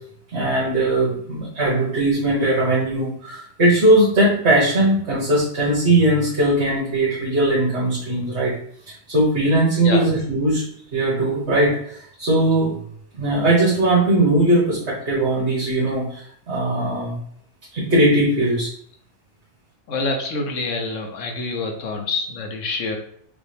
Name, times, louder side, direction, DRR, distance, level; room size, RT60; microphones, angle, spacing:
voice 1, 0.3-8.5 9.1-10.6 10.9-12.7 13.2-17.2 17.7-18.7, right 1 dB, 60° right, -7 dB, 1.6 m, -19 dB
voice 2, 19.9-23.0, left 3 dB, 80° left, 3 dB, 1.2 m, -26 dB
5.1 x 2.6 x 3.3 m, 0.64 s
omnidirectional pair, 1.3 m